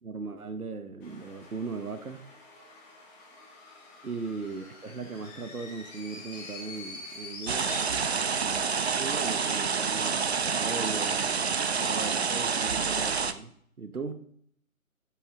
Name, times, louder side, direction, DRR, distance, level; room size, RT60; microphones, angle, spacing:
voice 1, 0.0-2.2 4.0-7.7 8.9-10.2 10.5-13.5 13.8-14.3, right 4 dB, 80° right, 1.1 m, -38 dB
sound 1, 1.0-7.8, left 3 dB, 10° left, 1.3 m, -46 dB
sound 2, 7.5-13.3, right 5 dB, 45° right, 0.7 m, -28 dB
12.0 x 7.9 x 3.8 m
figure-of-eight pair, 150°, 43 cm